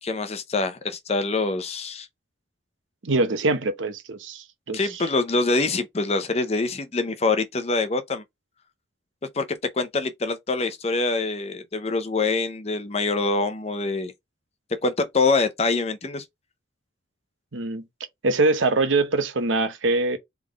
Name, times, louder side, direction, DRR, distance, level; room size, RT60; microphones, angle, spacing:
voice 1, 0.0-2.1 4.7-8.2 9.3-14.1 14.8-16.2, left 3 dB, 35° left, 0.6 m, -25 dB
voice 2, 3.0-5.0 17.5-17.9 18.2-20.2, right 2 dB, 90° right, 0.9 m, -23 dB
3.7 x 3.5 x 3.5 m
head